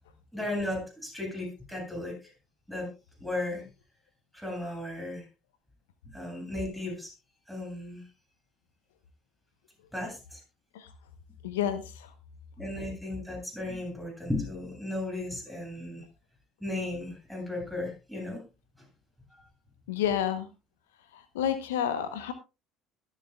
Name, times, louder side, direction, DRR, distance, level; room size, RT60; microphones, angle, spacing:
voice 1, 0.3-2.3 2.7-2.9 3.2-3.6 4.3-5.3 6.1-7.1 7.5-8.0 9.9-10.4 12.6-16.0 16.6-18.4 19.3-19.4, left 2 dB, ahead, 2 dB, 7.3 m, -35 dB
voice 2, 11.4-11.8 19.9-20.5 21.3-22.3, left 9 dB, 75° left, 12 dB, 0.9 m, -28 dB
22.0 x 7.4 x 2.3 m, 0.27 s
figure-of-eight pair, 60°, 0 cm